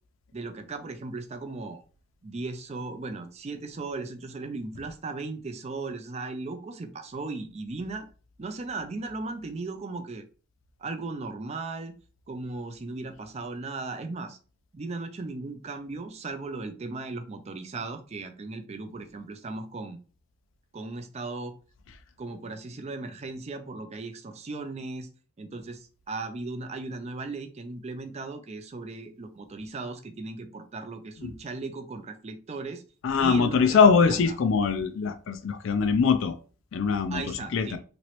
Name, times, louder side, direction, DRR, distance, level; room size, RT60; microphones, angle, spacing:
voice 1, 0.3-1.8 2.2-8.1 8.4-10.2 10.8-11.9 12.3-14.4 14.7-20.0 20.7-21.5 22.2-25.1 25.4-32.8 33.2-33.8 34.1-34.4 37.1-37.8, right 3 dB, 30° right, 0.4 m, -37 dB
voice 2, 33.0-36.3 36.7-37.8, left 5 dB, 65° left, 0.4 m, -22 dB
3.0 x 2.9 x 2.9 m
head